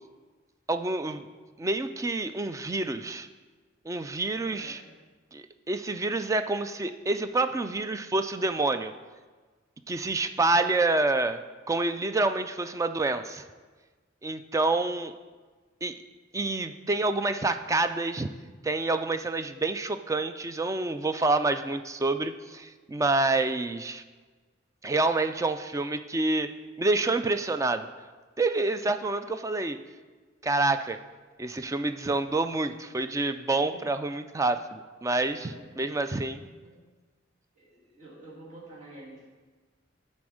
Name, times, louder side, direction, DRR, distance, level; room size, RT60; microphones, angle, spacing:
voice 1, 0.7-1.3 1.6-3.3 3.9-4.8 5.3-8.9 9.9-11.4 11.7-13.4 14.2-15.1 15.8-15.9 16.3-18.3 18.6-24.0 24.8-26.5 26.8-27.9 28.4-29.8 30.4-31.0 31.4-35.5 35.8-36.4, right 2 dB, 15° right, 9 dB, 0.3 m, -27 dB
voice 2, 4.5-5.0 33.7-33.8 35.4-35.8 36.6-36.8 37.5-39.3, right 1 dB, 40° right, -7 dB, 2.1 m, -48 dB
9.4 x 4.3 x 6.3 m, 1.4 s
head